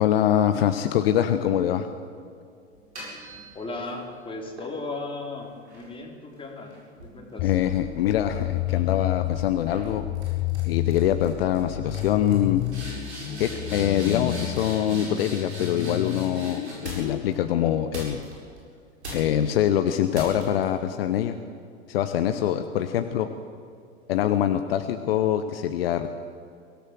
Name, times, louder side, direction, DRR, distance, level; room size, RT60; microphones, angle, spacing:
voice 1, 0.0-1.9 7.4-10.1 10.6-12.6 13.4-18.2 19.1-21.4 21.9-23.3 24.1-26.1, left 10 dB, 55° left, 9 dB, 1.2 m, -24 dB
sound 1, 2.7-4.0 4.6-8.1 8.5-8.9 9.7-9.9 10.1-10.6 10.9-11.3 11.5-11.6 11.9-17.3 17.9-18.6 19.0-19.5 20.1-20.6, right 1 dB, 75° right, 7.9 m, -40 dB
voice 2, 3.5-6.7 7.0-7.6 23.0-23.2 25.2-25.3, left 3 dB, 15° left, 1 dB, 4.0 m, -36 dB
sound 2, 7.4-17.7, left 18 dB, 35° left, 0.6 m, -31 dB
23.5 x 17.5 x 7.8 m, 2.4 s
figure-of-eight pair, 85°, 34 cm